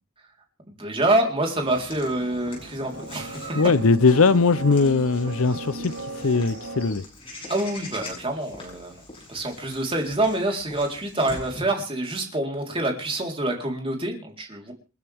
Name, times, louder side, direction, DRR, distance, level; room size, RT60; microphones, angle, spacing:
voice 1, 0.7-3.6 7.5-9.0 9.3-14.7, right 1 dB, 25° right, 4.0 m, -26 dB
sound 1, 1.6-6.9, right 2 dB, 60° right, 3.8 m, -37 dB
Walk footsteps / Bird vocalization bird call bird song, 1.7-11.6, left 2 dB, 25° left, 7.6 m, -43 dB
voice 2, 3.5-7.0, left 4 dB, 70° left, 0.7 m, -20 dB
29.0 x 10.0 x 3.6 m
head